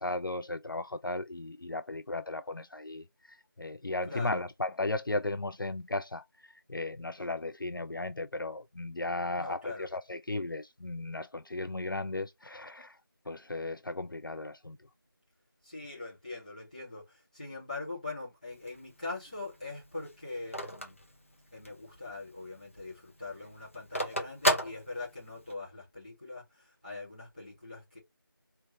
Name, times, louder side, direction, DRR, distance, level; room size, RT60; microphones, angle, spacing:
voice 1, 0.0-13.0 13.3-14.8, left 2 dB, 65° left, 0.4 m, -36 dB
voice 2, 4.1-4.4 9.3-9.9 15.6-21.0 21.5-28.0, left 3 dB, 20° left, 2.6 m, -42 dB
Telephone, 18.5-21.9 22.3-22.4 22.6-25.5, equal, 35° left, 0.8 m, -33 dB
4.3 x 3.4 x 3.2 m
figure-of-eight pair, 175°, 12 cm